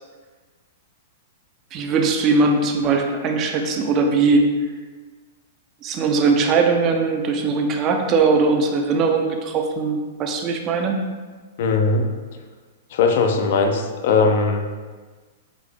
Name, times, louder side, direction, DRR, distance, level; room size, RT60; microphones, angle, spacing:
voice 1, 1.7-4.5 5.8-11.0, right 4 dB, 35° right, 3 dB, 0.5 m, -20 dB
voice 2, 11.6-12.1 12.9-14.7, left 4 dB, 55° left, 4 dB, 0.5 m, -19 dB
3.8 x 2.7 x 3.5 m, 1.4 s
figure-of-eight pair, 105°, 0 cm